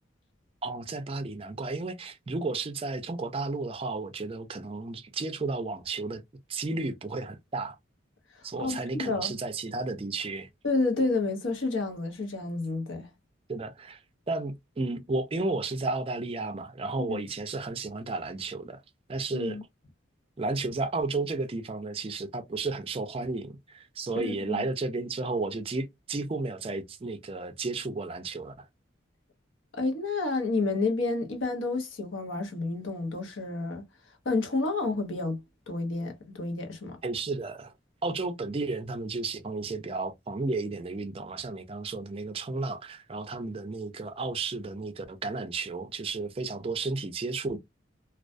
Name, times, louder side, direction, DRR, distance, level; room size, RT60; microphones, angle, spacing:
voice 1, 0.6-6.2 6.5-7.8 8.4-10.5 13.5-14.0 14.3-18.8 19.1-19.6 20.4-28.7 37.0-37.7 38.0-47.6, right 3 dB, 30° right, 0.4 m, -33 dB
voice 2, 8.4-9.3 10.6-13.1 17.0-17.2 19.3-19.6 24.1-24.6 29.7-33.8 34.2-37.0, left 3 dB, 85° left, 0.8 m, -30 dB
2.3 x 2.2 x 2.4 m
head